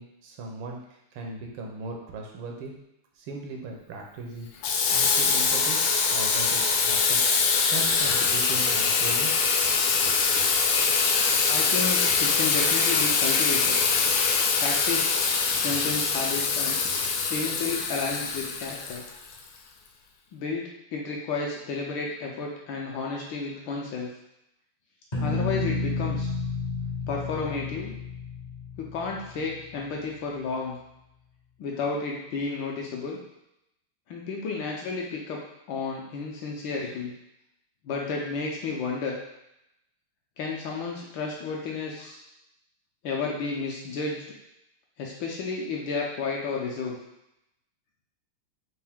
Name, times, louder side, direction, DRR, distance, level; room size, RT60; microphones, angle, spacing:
voice 1, 0.0-2.7 3.1-5.8 6.1-7.2 7.7-9.3, right 3 dB, 80° right, 0 dB, 1.6 m, -38 dB
Water tap faucet / Sink (filling or washing), 4.6-19.4, left 5 dB, 90° left, 1.5 m, -23 dB
voice 2, 11.5-13.8 14.6-15.2 15.6-16.8 17.3-19.0 20.3-24.1 25.2-26.3 27.1-27.9 28.8-30.8 31.6-33.2 34.1-35.4 35.7-37.1 37.8-39.1 40.4-42.2 43.0-44.3 45.0-47.0, left 4 dB, 70° left, -2 dB, 1.3 m, -32 dB
sound 1, 25.1-30.0, left 3 dB, 45° left, 0.6 m, -31 dB
4.5 x 2.6 x 3.5 m, 0.84 s
omnidirectional pair, 2.4 m